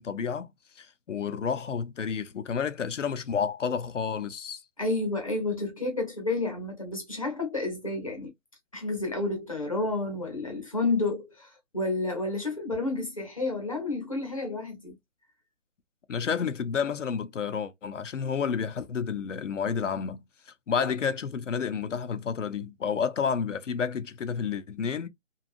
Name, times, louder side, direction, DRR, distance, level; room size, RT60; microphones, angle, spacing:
voice 1, 0.0-4.6 16.1-25.1, left 6 dB, 70° left, 0.6 m, -30 dB
voice 2, 4.8-8.3 8.7-15.0, left 2 dB, 25° left, 0.8 m, -30 dB
2.7 x 2.3 x 2.5 m
hypercardioid pair, 175°, 39 cm